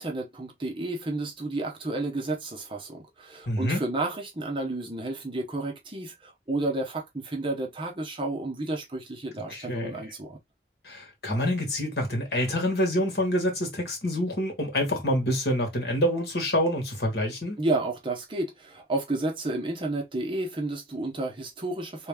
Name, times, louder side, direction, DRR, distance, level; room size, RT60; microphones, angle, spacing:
voice 1, 0.0-10.4 17.6-22.1, right 2 dB, 30° right, 0.8 m, -31 dB
voice 2, 3.5-3.8 9.5-10.0 10.8-17.6, equal, 65° left, 1.8 m, -27 dB
3.3 x 3.0 x 3.5 m
head